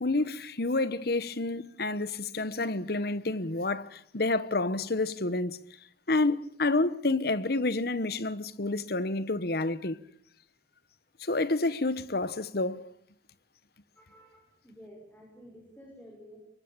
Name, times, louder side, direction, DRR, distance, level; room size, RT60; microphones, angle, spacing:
voice 1, 0.0-5.6 6.1-10.0 11.2-12.9, left 2 dB, 60° left, 1.1 m, -29 dB
voice 2, 14.0-16.4, equal, 10° left, 5.6 m, -52 dB
24.0 x 24.0 x 8.8 m
head